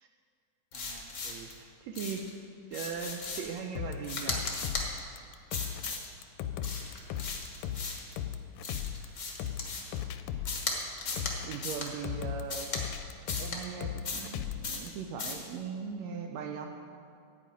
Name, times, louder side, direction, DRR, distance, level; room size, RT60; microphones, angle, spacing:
sound 1, 0.7-1.5 1.9-2.3 2.7-3.6 4.0-4.9 5.5-6.1 6.6-8.1 8.6-10.0 10.5-10.7 11.0-11.3 11.6-11.9 12.5-12.8 13.3-13.6 14.0-14.3 14.6-14.9 15.2-15.4, left 3 dB, 65° left, 0.7 m, -37 dB
voice 1, 0.7-2.3 2.7-4.5 11.4-12.7 13.4-16.7, right 6 dB, 80° right, 4 dB, 1.6 m, -39 dB
sound 2, 3.8-14.9, left 10 dB, 85° left, 2.1 m, -37 dB
12.0 x 5.3 x 8.5 m, 2.5 s
omnidirectional pair, 3.6 m